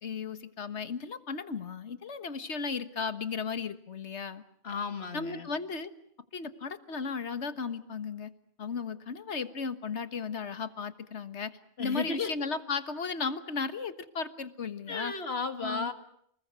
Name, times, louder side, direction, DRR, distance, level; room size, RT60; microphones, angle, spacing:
voice 1, 0.0-4.4 5.1-5.9 6.3-8.3 8.6-11.5 11.8-15.1 15.6-15.9, left 5 dB, 85° left, 11 dB, 1.7 m, -35 dB
voice 2, 4.6-5.5 11.8-12.3 14.9-15.9, left 4 dB, 65° left, 9 dB, 2.1 m, -34 dB
29.5 x 20.5 x 8.1 m, 0.71 s
omnidirectional pair, 1.1 m